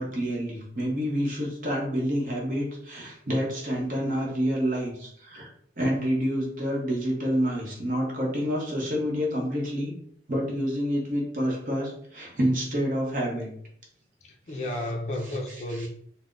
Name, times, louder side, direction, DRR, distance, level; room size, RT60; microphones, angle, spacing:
voice 1, 0.0-5.5 5.8-9.9 10.3-13.5 14.5-14.6 15.3-15.4 15.7-15.9, equal, 50° right, 0.9 m, -28 dB
voice 2, 14.2-15.9, left 1 dB, 40° left, 0.4 m, -32 dB
4.0 x 2.0 x 2.4 m
head